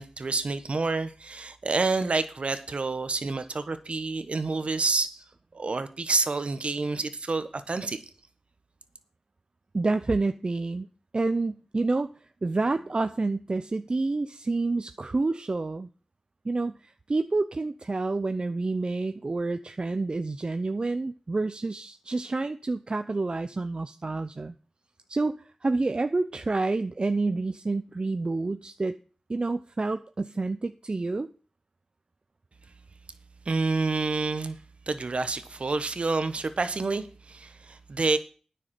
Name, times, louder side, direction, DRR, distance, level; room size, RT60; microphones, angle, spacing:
voice 1, 0.0-5.1 5.5-8.0 33.4-34.6 34.9-38.2, right 3 dB, 60° right, 11 dB, 1.3 m, -28 dB
voice 2, 9.7-10.9 11.1-12.1 12.4-15.9 16.4-24.5 25.1-29.0 29.3-31.3, right 3 dB, 45° right, 10 dB, 0.6 m, -28 dB
9.6 x 6.6 x 7.7 m, 0.38 s
cardioid pair, 50°, 2 cm